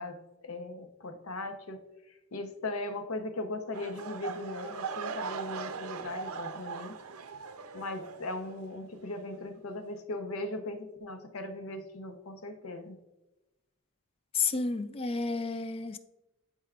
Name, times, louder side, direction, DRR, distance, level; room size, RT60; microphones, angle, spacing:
voice 1, 0.0-1.8 2.3-7.0 7.7-13.0, left 2 dB, 70° left, 0.8 m, -38 dB
sound 1, 3.7-8.7 9.0-9.4 9.9-10.0, right 5 dB, 80° right, 0.6 m, -40 dB
voice 2, 14.3-16.0, left 4 dB, 25° left, 0.3 m, -31 dB
12.0 x 4.6 x 2.4 m
head